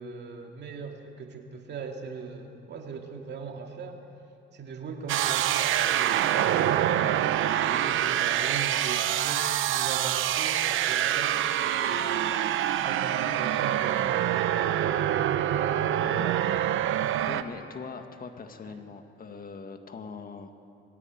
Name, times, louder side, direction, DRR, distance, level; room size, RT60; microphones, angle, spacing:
voice 1, 0.0-4.0 4.5-7.1 7.6-14.7 18.7-18.8, right 5 dB, 60° right, 3 dB, 2.4 m, -40 dB
sound 1, 5.1-17.4, right 11 dB, 85° right, 0.9 m, -26 dB
voice 2, 16.0-16.7 17.3-20.6, left 5 dB, 45° left, 6 dB, 1.8 m, -42 dB
21.0 x 16.0 x 9.1 m, 2.5 s
cardioid pair, 90°, 20 cm